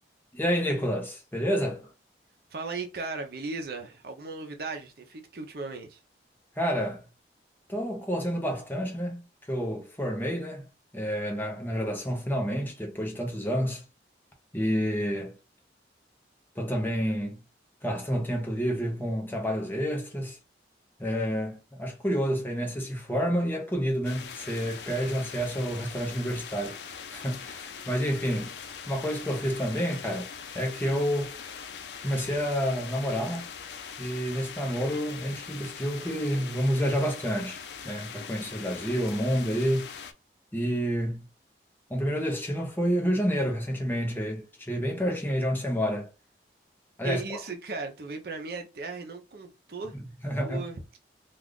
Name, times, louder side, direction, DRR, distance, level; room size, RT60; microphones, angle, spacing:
voice 1, 0.3-1.9 6.6-7.0 7.7-9.2 9.5-10.6 10.9-13.8 14.5-15.3 16.6-17.4 17.8-20.4 21.0-28.5 28.9-31.3 32.0-33.5 34.0-39.9 40.5-41.2 41.9-46.1 47.0-47.4 50.2-50.6, equal, 10° left, 0.6 m, -29 dB
voice 2, 2.5-6.0 47.0-50.0 50.4-50.8, right 4 dB, 60° right, 0.6 m, -37 dB
sound 1, 24.0-40.1, left 6 dB, 75° left, 0.4 m, -42 dB
2.4 x 2.4 x 3.4 m
head